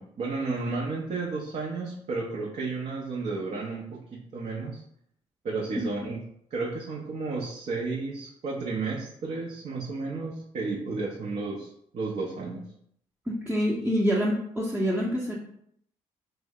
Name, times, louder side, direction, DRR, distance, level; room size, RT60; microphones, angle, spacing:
voice 1, 0.0-4.8 5.4-6.2 6.5-12.6, right 3 dB, 50° right, -3 dB, 0.6 m, -32 dB
voice 2, 13.3-15.4, equal, 10° right, -6 dB, 0.7 m, -26 dB
2.6 x 2.1 x 3.5 m, 0.69 s
hypercardioid pair, 50°, 15 cm